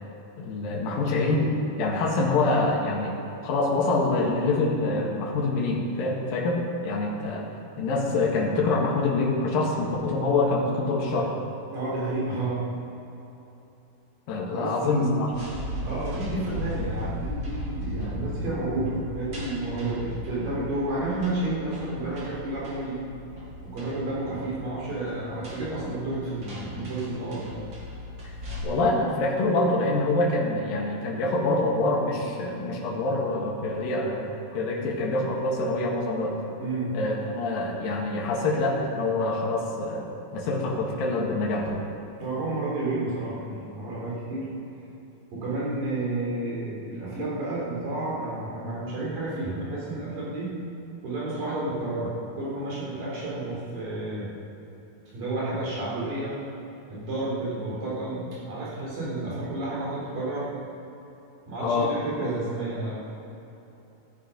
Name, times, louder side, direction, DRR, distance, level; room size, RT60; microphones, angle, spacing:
voice 1, 0.4-3.2 3.4-7.5 7.8-11.3 14.3-15.3 28.6-36.4 36.9-41.8 61.6-61.9, left 2 dB, 65° left, -2 dB, 3.4 m, -25 dB
voice 2, 11.7-12.6 14.5-15.2 15.8-23.0 23.6-27.5 36.6-36.9 42.2-44.5 45.3-50.5 51.0-54.3 55.1-56.4 56.9-60.5 61.5-63.1, right 2 dB, 60° right, -6 dB, 5.5 m, -31 dB
sound 1, 15.3-28.6, left 1 dB, 35° right, 2.8 m, -37 dB
15.0 x 13.0 x 5.2 m, 3.0 s
omnidirectional pair, 4.4 m